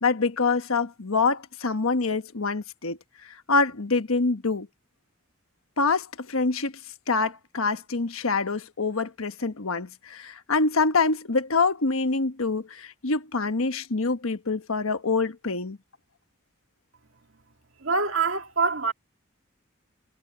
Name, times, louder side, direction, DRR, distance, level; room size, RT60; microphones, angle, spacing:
voice 1, 0.0-3.0 3.2-4.7 5.8-6.7 7.1-15.8, left 4 dB, 85° left, 1.3 m, -25 dB
voice 2, 17.8-18.9, right 4 dB, 70° right, 2.0 m, -25 dB
head